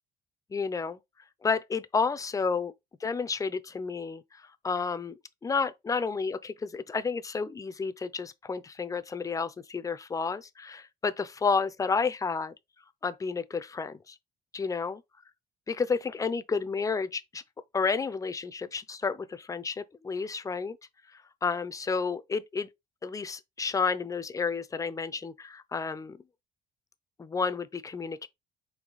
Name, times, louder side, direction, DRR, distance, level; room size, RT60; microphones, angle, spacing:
voice 1, 0.5-1.0 1.4-2.7 3.0-12.5 13.0-14.2 14.5-15.0 15.7-17.4 17.7-20.8 21.1-22.7 23.0-26.2 27.2-28.3, left 5 dB, 20° left, 0.5 m, -31 dB
4.7 x 2.7 x 4.0 m
cardioid pair, 110°, 17 cm